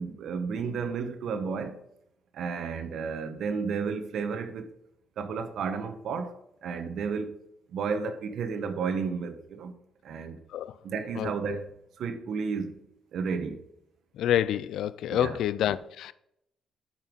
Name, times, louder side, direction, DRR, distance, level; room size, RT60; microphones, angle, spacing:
voice 1, 0.0-1.8 2.3-4.7 5.2-7.4 7.7-9.7 10.0-10.4 10.8-12.8 13.1-13.6 15.1-15.4, right 5 dB, 70° right, 1.1 m, -32 dB
voice 2, 11.2-11.6 14.2-16.1, left 11 dB, 80° left, 0.4 m, -28 dB
9.4 x 5.7 x 5.2 m
cardioid pair, 90°, 0 cm